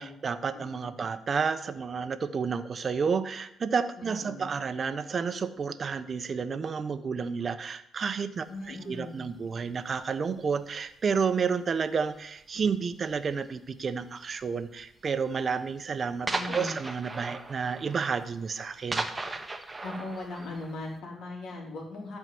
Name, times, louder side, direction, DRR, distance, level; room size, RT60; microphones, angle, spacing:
voice 1, 0.0-19.1, right 5 dB, 45° right, 12 dB, 0.9 m, -31 dB
voice 2, 0.5-1.0 4.0-4.5 8.5-9.3 16.3-16.7 19.6-22.2, left 2 dB, 70° left, 0 dB, 3.4 m, -39 dB
sound 1, 8.6-8.8 9.6-10.0 10.3-10.7 11.1-11.3 11.8-11.9 12.1-12.2 13.1-13.5 14.3-14.4 14.8-14.9 15.3-15.4 15.6-15.7 16.3-21.0, right 2 dB, 20° right, 1.1 m, -37 dB
12.5 x 4.8 x 7.8 m, 0.73 s
cardioid pair, 90°, 0 cm